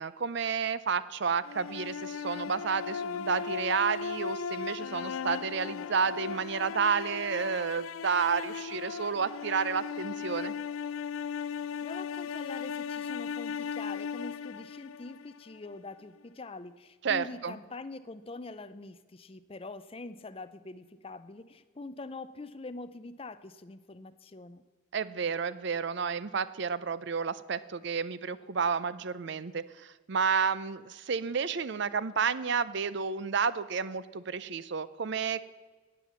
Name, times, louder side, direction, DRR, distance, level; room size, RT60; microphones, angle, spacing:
voice 1, 0.0-10.5 17.0-17.5 24.9-35.4, right 6 dB, 55° right, 16 dB, 0.5 m, -31 dB
sound 1, 1.4-15.6, left 6 dB, 80° left, 0.4 m, -37 dB
voice 2, 11.6-24.6, left 3 dB, 25° left, 13 dB, 0.5 m, -44 dB
15.5 x 9.2 x 7.1 m, 1.4 s
head